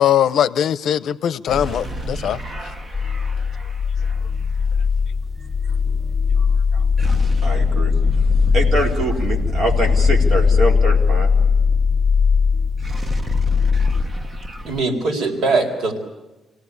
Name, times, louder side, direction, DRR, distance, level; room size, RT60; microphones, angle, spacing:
voice 1, 0.0-2.7, left 10 dB, 65° left, 0.7 m, -20 dB
sound 1, 1.5-4.4 7.0-12.3 12.6-14.8, equal, 20° right, 1.0 m, -29 dB
sound 2, 2.9-14.0, left 5 dB, ahead, 1.1 m, -19 dB
voice 2, 6.4-6.8 7.4-11.3, right 1 dB, 40° right, 3.9 m, -25 dB
voice 3, 14.7-16.0, right 3 dB, 85° right, 4.5 m, -21 dB
26.5 x 18.0 x 8.4 m
cardioid pair, 175°, 0 cm